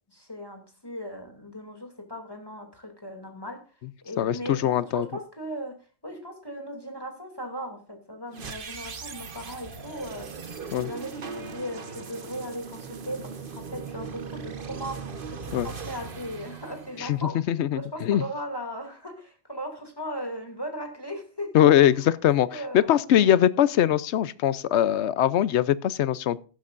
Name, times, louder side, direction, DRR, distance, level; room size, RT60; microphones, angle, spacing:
voice 1, 0.1-3.6 4.0-5.8 6.0-10.5 10.8-13.2 13.5-17.4 17.7-21.5 22.5-23.3, equal, 20° left, 2.7 m, -37 dB
voice 2, 4.2-5.1 10.7-10.9 15.5-15.7 17.0-18.2 21.5-26.4, left 11 dB, 80° left, 1.0 m, -22 dB
sound 1, 8.3-17.5, right 5 dB, 50° right, 1.3 m, -39 dB
15.0 x 11.5 x 2.5 m
omnidirectional pair, 1.1 m